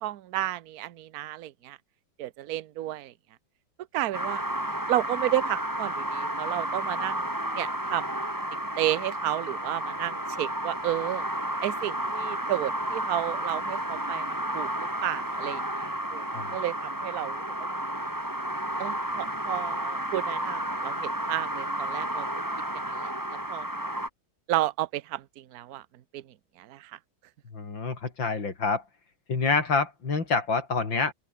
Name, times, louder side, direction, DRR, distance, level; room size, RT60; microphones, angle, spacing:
voice 1, 0.0-1.8 2.2-3.1 3.9-4.4 4.9-8.1 8.8-11.2 11.6-14.2 14.5-16.2 16.5-17.4 18.8-22.3 22.9-23.1 23.5-23.7 24.5-25.8 26.1-26.2 26.6-27.0, right 14 dB, 60° right, 1.1 m, -32 dB
sound 1, 4.1-24.1, right 1 dB, 10° right, 4.4 m, -32 dB
voice 2, 27.5-28.8 29.3-31.1, left 4 dB, 60° left, 4.1 m, -27 dB
open air
omnidirectional pair, 2.3 m